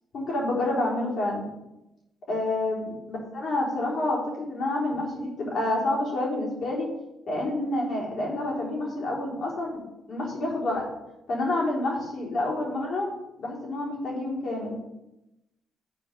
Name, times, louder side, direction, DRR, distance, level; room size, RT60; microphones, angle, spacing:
voice 1, 0.1-1.5 2.3-6.9 7.3-10.9 11.3-13.1 13.4-14.8, left 2 dB, 60° left, -4 dB, 3.9 m, -28 dB
11.5 x 4.7 x 5.3 m, 0.92 s
cardioid pair, 90°, 0 cm